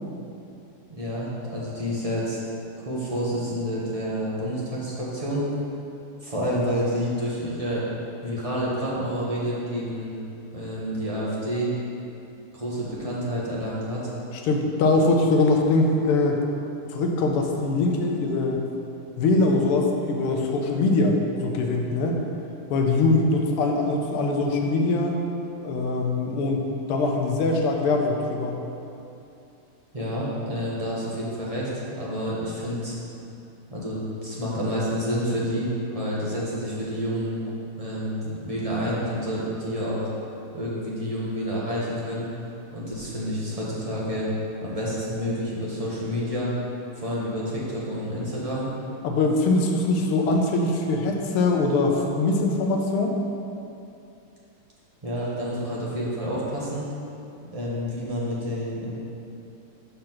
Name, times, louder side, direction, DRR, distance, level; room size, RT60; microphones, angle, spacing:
voice 1, 0.9-2.4 2.8-5.4 6.2-7.8 8.2-10.2 10.5-11.7 12.5-14.1 29.9-33.0 33.7-37.4 37.8-40.1 40.5-42.3 42.7-44.3 44.6-46.5 47.0-48.7 55.0-56.8 57.5-58.9, equal, 20° right, -7 dB, 1.0 m, -29 dB
voice 2, 14.5-16.4 16.9-18.7 19.2-22.2 22.7-25.2 25.6-26.6 26.9-28.6 49.0-53.2, left 2 dB, 90° left, 2 dB, 1.7 m, -22 dB
5.7 x 5.1 x 6.1 m, 2.7 s
omnidirectional pair, 2.4 m